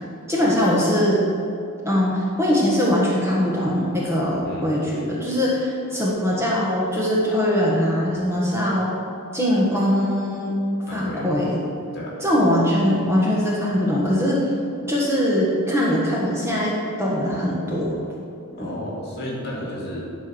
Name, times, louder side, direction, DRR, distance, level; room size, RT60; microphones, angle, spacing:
voice 1, 0.3-1.2 1.8-8.9 9.3-10.5 10.9-11.6 12.2-14.4 14.9-16.7 17.0-18.0 18.6-18.7, equal, 10° right, -5 dB, 1.4 m, -21 dB
voice 2, 10.8-11.3 11.9-12.2 18.6-20.0, left 1 dB, 45° left, -4 dB, 2.4 m, -33 dB
11.0 x 4.6 x 6.2 m, 2.5 s
head